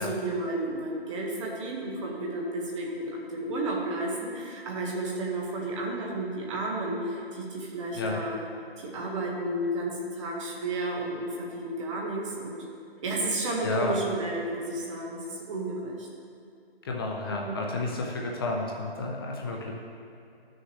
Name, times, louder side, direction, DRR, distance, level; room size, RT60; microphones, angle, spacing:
voice 1, 0.0-8.4 8.8-12.6 13.0-16.1 17.3-17.6, right 2 dB, 30° right, -2 dB, 1.5 m, -32 dB
voice 2, 13.6-14.0 16.8-19.8, left 3 dB, 25° left, -1 dB, 0.6 m, -31 dB
12.5 x 6.5 x 3.2 m, 2.5 s
figure-of-eight pair, 150°, 30 cm